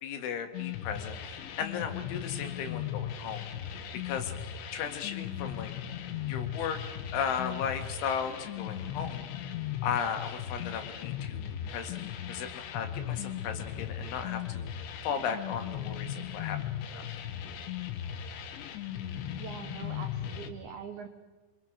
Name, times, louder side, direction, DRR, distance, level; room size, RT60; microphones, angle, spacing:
voice 1, 0.0-3.5 4.0-4.4 4.7-5.7 6.2-6.8 7.1-9.3 9.8-12.0 12.3-16.6 16.9-17.0, left 7 dB, 90° left, 6 dB, 4.3 m, -36 dB
sound 1, 0.5-20.5, left 10 dB, 75° left, 3.5 m, -37 dB
voice 2, 19.4-21.1, right 7 dB, 80° right, 6 dB, 1.7 m, -43 dB
25.5 x 25.0 x 6.3 m, 1.3 s
omnidirectional pair, 5.4 m